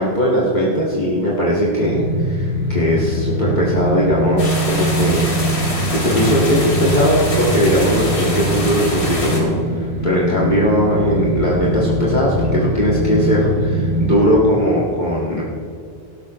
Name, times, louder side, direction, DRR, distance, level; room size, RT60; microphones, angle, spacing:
voice 1, 0.0-15.4, equal, 45° left, -6 dB, 2.2 m, -19 dB
sound 1, 1.8-14.3, right 1 dB, 80° right, 1.9 m, -22 dB
sound 2, 4.4-9.4, left 1 dB, 80° left, 2.8 m, -26 dB
17.5 x 12.0 x 3.2 m, 2.3 s
omnidirectional pair, 1.1 m